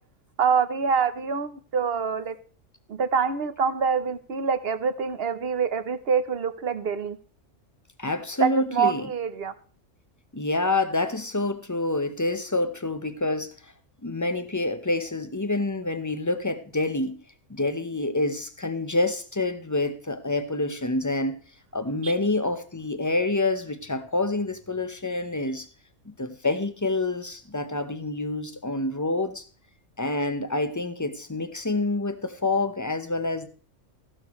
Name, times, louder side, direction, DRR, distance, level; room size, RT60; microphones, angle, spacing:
voice 1, 0.4-2.3 2.9-7.2 8.4-9.5 22.0-22.1, right 6 dB, 55° right, 1.1 m, -25 dB
voice 2, 8.0-9.1 10.3-13.5 14.0-17.2 17.5-21.4 21.7-25.7 26.1-29.4 30.0-33.5, left 2 dB, 15° left, 0.9 m, -27 dB
15.0 x 12.0 x 3.2 m
omnidirectional pair, 1.3 m